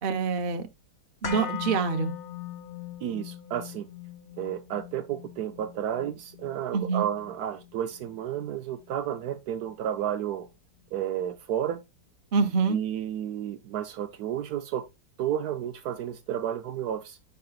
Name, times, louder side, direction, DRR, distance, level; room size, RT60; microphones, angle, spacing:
voice 1, 0.0-0.7 1.2-2.1 6.7-7.0 12.3-12.8, right 5 dB, 45° right, 0.7 m, -26 dB
sound 1, 1.2-9.3 9.6-9.7, left 10 dB, 45° left, 1.4 m, -40 dB
voice 2, 3.0-3.9 4.4-10.5 10.9-11.8 12.7-14.8 15.2-17.2, right 10 dB, 70° right, 1.0 m, -32 dB
9.1 x 5.7 x 2.3 m
omnidirectional pair, 1.9 m